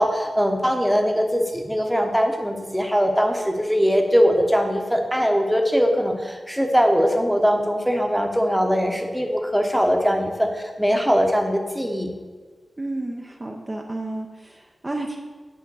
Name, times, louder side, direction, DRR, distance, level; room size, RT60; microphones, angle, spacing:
voice 1, 0.0-12.1, equal, ahead, 2 dB, 1.0 m, -21 dB
voice 2, 12.8-15.2, right 2 dB, 25° right, 0 dB, 0.7 m, -31 dB
9.3 x 3.6 x 6.9 m, 1.5 s
wide cardioid pair, 85°, 0 cm